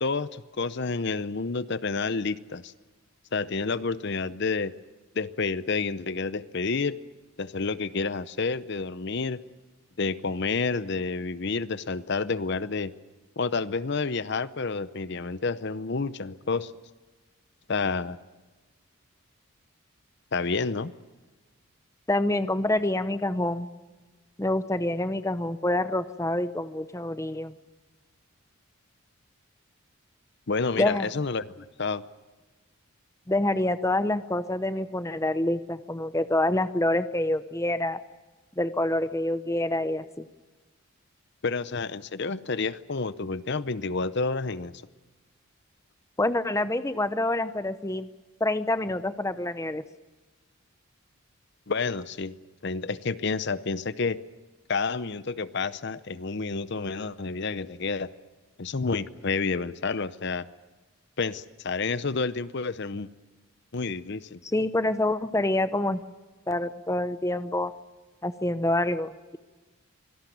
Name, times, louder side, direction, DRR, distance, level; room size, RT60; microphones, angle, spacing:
voice 1, 0.0-2.7 3.3-4.7 5.2-7.0 7.4-9.4 10.0-12.9 13.4-16.7 17.7-18.2 20.3-20.9 30.5-31.4 31.8-32.0 41.4-44.7 51.7-52.3 52.6-54.2 54.7-58.1 58.6-60.5 61.2-63.1 63.7-64.4, left 4 dB, 50° left, 15 dB, 0.7 m, -29 dB
voice 2, 22.1-23.7 24.4-27.5 30.8-31.1 33.3-38.0 38.6-40.3 46.2-48.1 48.4-49.8 64.5-66.0 66.5-67.7 68.2-69.4, left 1 dB, 15° left, 12 dB, 0.7 m, -27 dB
25.0 x 18.0 x 9.3 m, 1.3 s
head